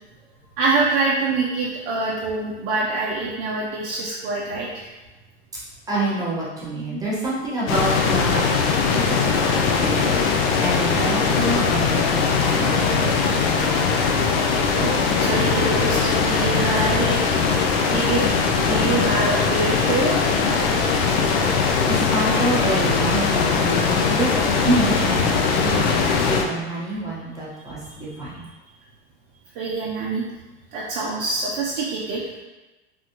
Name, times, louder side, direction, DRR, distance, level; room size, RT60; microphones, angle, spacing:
voice 1, 0.6-4.9 9.8-9.9 14.7-17.2 17.8-20.2 29.6-30.3 30.7-32.2, right 3 dB, 50° right, -5 dB, 0.6 m, -25 dB
voice 2, 5.9-13.5 21.2-21.3 21.8-24.3 24.6-28.4, right 1 dB, 10° right, -8 dB, 1.0 m, -27 dB
sound 1, 7.7-26.4, left 5 dB, 55° left, 0.5 m, -20 dB
3.4 x 2.3 x 2.9 m, 1.1 s
hypercardioid pair, 115°, 34 cm